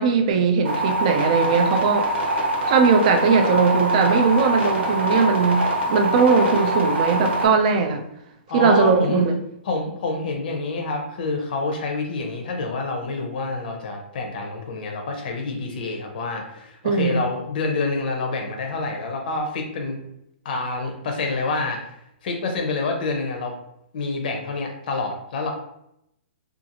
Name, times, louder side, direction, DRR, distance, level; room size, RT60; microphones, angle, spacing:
voice 1, 0.0-2.1 2.6-5.6 5.9-8.0 8.5-9.3 16.8-17.2, right 5 dB, 35° right, 5 dB, 0.4 m, -19 dB
sound 1, 0.6-7.5, right 1 dB, 80° right, 1.0 m, -24 dB
voice 2, 8.5-9.3 9.6-20.0 20.4-21.9 22.2-23.6 23.9-25.5, left 3 dB, 50° left, 2 dB, 0.6 m, -27 dB
2.5 x 2.4 x 2.8 m, 0.78 s
hypercardioid pair, 165°, 6 cm